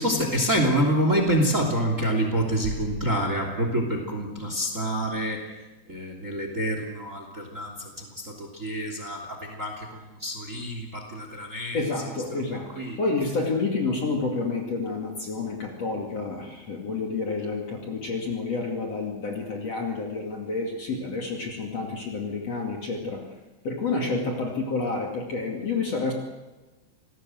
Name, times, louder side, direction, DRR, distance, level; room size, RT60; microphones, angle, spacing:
voice 1, 0.0-5.4 5.9-13.0, right 1 dB, 20° right, 4 dB, 2.9 m, -27 dB
voice 2, 11.7-12.7 13.0-23.2 23.6-26.1, left 3 dB, 40° left, 0 dB, 3.1 m, -29 dB
27.0 x 18.5 x 7.9 m, 1.1 s
omnidirectional pair, 4.9 m